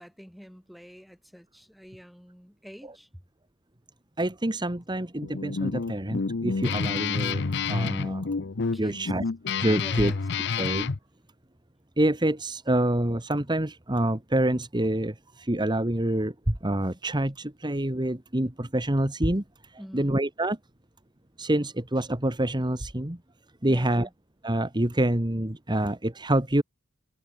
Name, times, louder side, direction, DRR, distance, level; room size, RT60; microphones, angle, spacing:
voice 1, 0.0-3.2 8.7-9.1 9.7-10.2 19.8-20.2 23.6-24.1, equal, ahead, 4.2 m, -46 dB
voice 2, 4.2-7.4 7.7-8.2 8.8-9.2 9.6-10.1 10.6-10.9 12.0-19.4 19.7-20.6 21.4-23.2 23.6-24.1 24.4-26.6, right 1 dB, 20° right, 1.7 m, -26 dB
Guitar, 5.2-11.0, left 4 dB, 60° left, 0.7 m, -29 dB
head